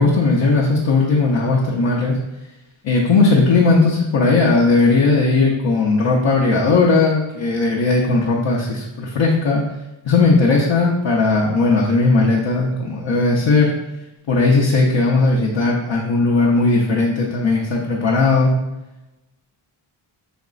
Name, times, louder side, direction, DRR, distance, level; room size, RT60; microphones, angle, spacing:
voice 1, 0.0-2.2 2.8-9.6 10.0-13.7 14.3-18.5, left 3 dB, 65° left, -4 dB, 0.8 m, -17 dB
5.2 x 2.9 x 2.4 m, 0.99 s
wide cardioid pair, 75°, 49 cm